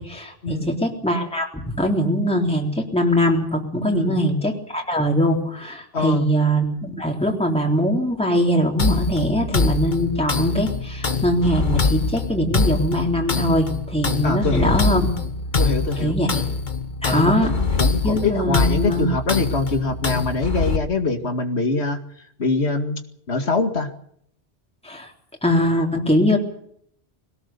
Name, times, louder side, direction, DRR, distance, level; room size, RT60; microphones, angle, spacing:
voice 1, 0.0-15.1 16.0-16.4 17.0-17.5 18.0-19.1 24.8-25.1 25.4-26.4, equal, 5° left, 0 dB, 3.6 m, -22 dB
voice 2, 5.9-6.3 14.2-14.8 15.6-16.2 17.0-22.0 22.4-23.0 23.3-23.9, left 3 dB, 80° left, 6 dB, 2.5 m, -24 dB
sound 1, 8.8-20.8, left 4 dB, 45° left, 1.6 m, -24 dB
22.0 x 18.0 x 6.9 m, 0.67 s
omnidirectional pair, 1.1 m